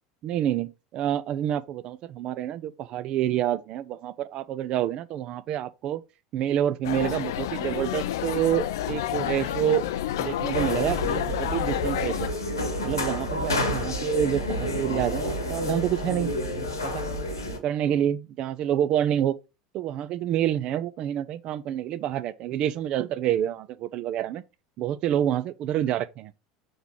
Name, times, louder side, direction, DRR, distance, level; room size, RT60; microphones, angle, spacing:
voice 1, 0.2-6.0 6.3-9.9 10.2-12.3 12.8-16.3 16.8-17.1 17.6-19.4 19.7-24.4 24.8-26.3, right 11 dB, 45° right, 0.6 m, -27 dB
sound 1, 6.8-12.3, left 11 dB, 65° left, 0.5 m, -30 dB
sound 2, 10.5-17.6, left 1 dB, 80° left, 1.4 m, -29 dB
6.6 x 4.6 x 3.7 m
figure-of-eight pair, 75°, 2 cm